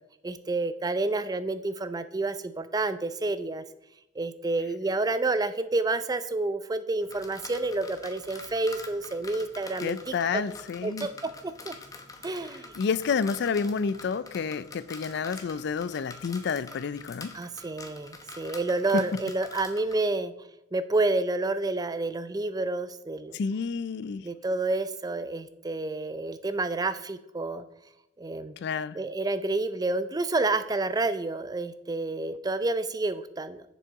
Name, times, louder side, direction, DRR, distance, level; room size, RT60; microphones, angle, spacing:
voice 1, 0.2-3.6 4.2-10.4 10.8-11.1 11.4-11.7 12.2-12.7 17.3-20.3 20.7-23.4 24.2-27.6 28.2-28.6 28.9-33.6, right 2 dB, 20° right, 0.4 m, -29 dB
sound 1, 7.0-20.0, left 3 dB, 20° left, 0.9 m, -46 dB
voice 2, 9.8-11.1 12.8-17.3 18.9-19.2 23.3-24.3 28.6-29.0, left 5 dB, 60° left, 0.4 m, -29 dB
6.9 x 6.2 x 4.6 m
head